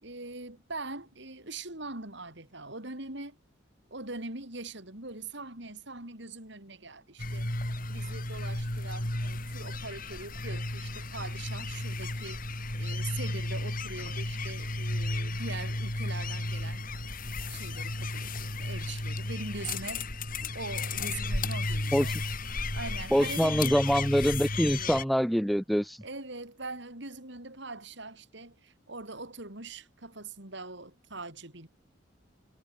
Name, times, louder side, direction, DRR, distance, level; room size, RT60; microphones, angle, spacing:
voice 1, 0.0-3.4 3.9-7.5 7.9-12.4 12.8-16.8 17.5-20.0 20.5-22.1 22.7-23.8 24.6-25.0 26.0-31.7, right 3 dB, 60° right, 4.4 m, -42 dB
sound 1, 7.2-25.0, left 2 dB, 40° left, 5.0 m, -34 dB
voice 2, 23.1-26.0, equal, ahead, 0.3 m, -25 dB
head